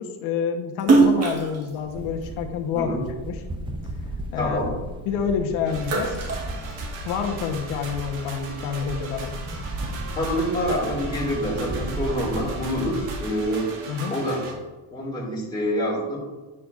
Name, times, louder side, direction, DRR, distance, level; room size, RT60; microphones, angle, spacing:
voice 1, 0.0-3.4 4.3-4.6 5.0-6.2 7.0-9.3 13.9-14.1, left 6 dB, 70° left, 4 dB, 1.1 m, -28 dB
Splash splatter, 0.8-3.3 3.8-5.3 5.6-7.3, right 4 dB, 30° right, 1.3 m, -23 dB
sound 1, 1.8-13.4, right 1 dB, 10° right, 0.4 m, -35 dB
voice 2, 4.4-4.7 10.2-13.7 14.1-14.5 14.9-16.2, equal, 10° left, -4 dB, 2.2 m, -26 dB
sound 2, 5.7-14.5, right 3 dB, 90° right, 2.0 m, -38 dB
9.9 x 9.1 x 2.5 m, 1.2 s
cardioid pair, 140°, 48 cm